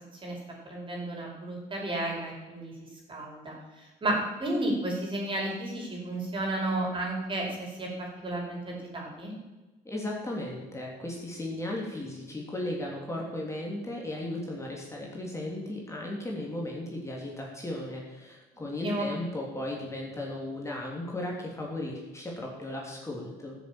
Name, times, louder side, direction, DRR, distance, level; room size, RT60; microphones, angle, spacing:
voice 1, 0.7-2.7 3.1-3.6 4.0-7.9 8.2-9.3 18.8-19.1, right 1 dB, 30° right, -1 dB, 5.2 m, -32 dB
voice 2, 9.8-23.6, left 1 dB, 15° left, -2 dB, 3.2 m, -36 dB
13.5 x 7.5 x 9.0 m, 1.1 s
cardioid pair, 110°, 17 cm